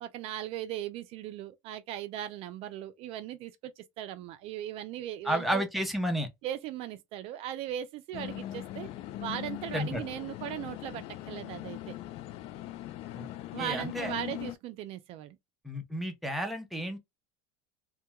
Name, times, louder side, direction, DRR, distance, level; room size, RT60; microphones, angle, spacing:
voice 1, 0.0-5.7 6.4-8.9 9.2-12.0 13.5-15.4, right 11 dB, 50° right, 0.4 m, -38 dB
voice 2, 5.2-6.3 9.7-10.0 13.2-13.3 13.6-14.1 15.6-17.0, equal, ahead, 0.6 m, -31 dB
sound 1, 8.1-14.6, left 14 dB, 50° left, 0.4 m, -40 dB
2.2 x 2.2 x 2.8 m
supercardioid pair, 135°, 13 cm